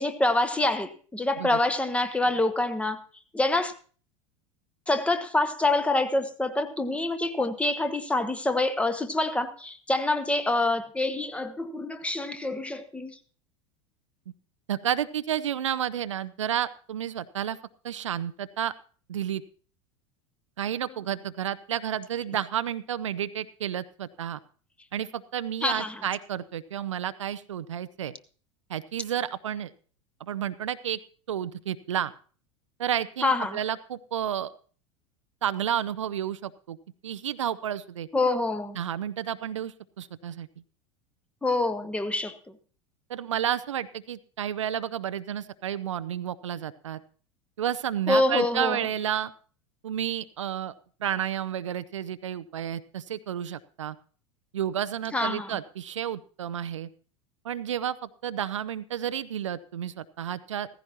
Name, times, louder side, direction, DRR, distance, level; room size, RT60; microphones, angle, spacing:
voice 1, 0.0-3.0 3.3-3.7 4.9-13.2 25.6-26.0 33.2-33.6 38.1-38.8 41.4-42.3 48.1-48.8 55.1-55.6, left 2 dB, 5° left, 0.9 m, -26 dB
voice 2, 14.7-17.6 17.8-18.7 19.1-19.4 20.6-24.4 24.9-28.1 28.7-29.7 30.2-31.0 31.3-32.1 32.8-34.5 35.4-36.8 37.0-38.1 38.8-40.5 43.1-47.0 47.6-49.3 49.8-50.7 51.0-54.0 54.5-56.9 57.4-60.7, right 10 dB, 70° right, 0.5 m, -31 dB
16.0 x 15.0 x 2.9 m
figure-of-eight pair, 80°, 16 cm